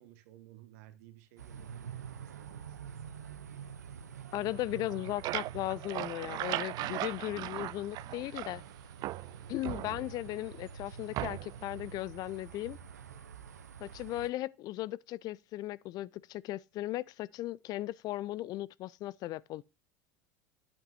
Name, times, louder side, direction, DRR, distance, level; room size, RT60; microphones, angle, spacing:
voice 1, 0.0-3.1, right 13 dB, 65° right, 1.3 m, -56 dB
sound 1, 1.4-14.3, right 8 dB, 85° right, 0.7 m, -47 dB
voice 2, 4.3-8.6 9.5-12.8 13.8-19.6, left 16 dB, 45° left, 0.4 m, -37 dB
sound 2, 4.8-8.7 9.0-10.4 11.1-11.7, right 17 dB, 50° right, 0.4 m, -38 dB
9.1 x 8.7 x 2.5 m
hypercardioid pair, 80°, 9 cm